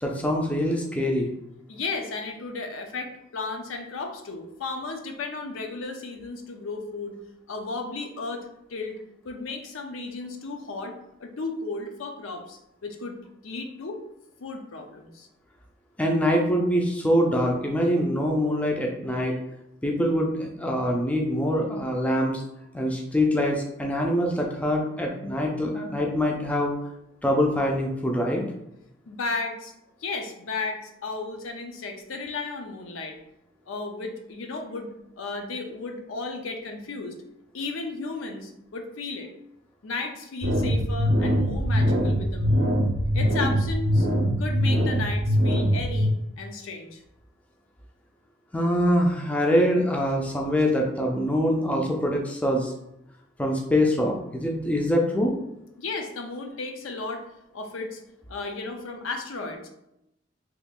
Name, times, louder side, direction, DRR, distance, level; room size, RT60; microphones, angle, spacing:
voice 1, 0.0-1.3 16.0-19.4 19.8-22.4 22.7-26.7 27.2-28.4 48.5-52.7 53.4-55.3, equal, 5° left, 0 dB, 0.3 m, -24 dB
voice 2, 1.7-7.2 7.5-8.4 8.7-9.0 9.2-13.2 13.4-14.0 14.4-15.3 29.1-29.7 30.0-33.2 33.7-37.1 37.5-39.3 39.8-42.7 43.1-44.1 44.4-47.0 55.8-57.3 57.5-58.0 58.3-59.7, left 3 dB, 90° left, 4 dB, 0.5 m, -34 dB
sound 1, 40.4-46.1, equal, 60° right, 0.5 m, -23 dB
2.9 x 2.4 x 3.6 m, 0.84 s
head